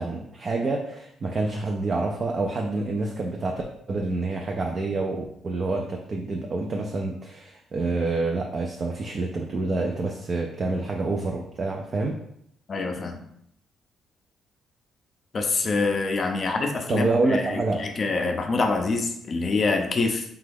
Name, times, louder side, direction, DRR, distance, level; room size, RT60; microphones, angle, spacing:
voice 1, 0.0-3.6 3.9-12.2 16.9-17.9, right 3 dB, 40° right, 1 dB, 0.4 m, -27 dB
voice 2, 12.7-13.2 15.3-17.6 18.0-20.2, left 3 dB, 45° left, 4 dB, 0.4 m, -25 dB
2.9 x 2.3 x 3.4 m, 0.73 s
cardioid pair, 90°, 0 cm